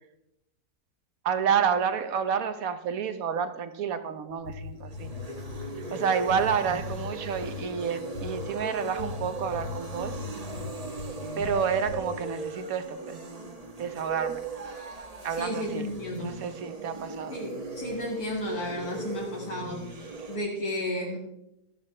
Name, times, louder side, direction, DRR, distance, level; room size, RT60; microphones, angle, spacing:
voice 1, 1.2-5.1 5.9-10.1 11.4-13.2 13.8-14.4 15.2-15.9 16.2-17.4, right 7 dB, 65° right, 10 dB, 1.2 m, -29 dB
sound 1, 4.3-5.7 6.3-7.7 8.1-8.5 9.0-11.1 11.4-12.0, left 6 dB, 85° left, 1.8 m, -38 dB
sound 2, 4.7-20.4, right 3 dB, 25° right, 1.1 m, -38 dB
voice 2, 15.4-16.3 17.3-19.8 20.3-21.2, left 1 dB, 70° left, -4 dB, 2.8 m, -33 dB
13.0 x 12.5 x 3.3 m, 0.86 s
omnidirectional pair, 1.7 m